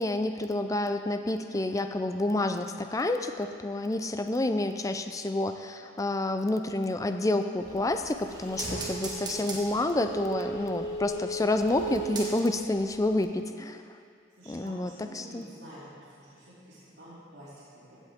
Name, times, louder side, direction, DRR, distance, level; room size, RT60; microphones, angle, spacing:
voice 1, 0.0-13.8 14.5-15.5, left 2 dB, 15° left, 7 dB, 0.4 m, -29 dB
sound 1, 7.6-12.7 13.1-13.2, right 2 dB, 20° right, 1.5 m, -36 dB
voice 2, 8.9-9.5 14.3-15.9 16.2-18.0, equal, 60° right, -12 dB, 2.9 m, -49 dB
16.0 x 8.2 x 3.6 m, 2.4 s
head